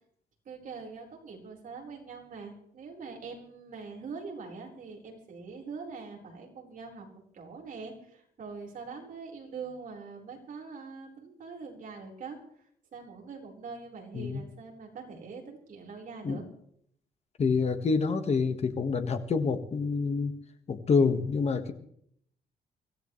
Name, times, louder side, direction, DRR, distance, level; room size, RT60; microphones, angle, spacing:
voice 1, 0.4-7.1 7.3-12.4 12.9-16.5, right 4 dB, 50° right, 0 dB, 4.6 m, -43 dB
voice 2, 17.4-20.3 20.7-21.7, left 4 dB, 40° left, 8 dB, 1.5 m, -27 dB
24.5 x 15.5 x 3.2 m, 0.68 s
cardioid pair, 155°, 17 cm